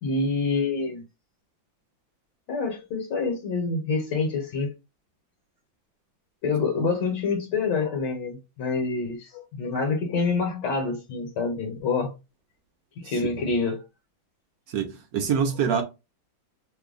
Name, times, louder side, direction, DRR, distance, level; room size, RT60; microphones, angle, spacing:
voice 1, 0.0-1.0 2.5-4.7 6.4-12.1 13.0-13.8, left 4 dB, 65° left, 1.3 m, -27 dB
voice 2, 13.0-13.4 14.7-15.8, right 7 dB, 70° right, 0.9 m, -26 dB
3.1 x 2.2 x 3.6 m
omnidirectional pair, 2.2 m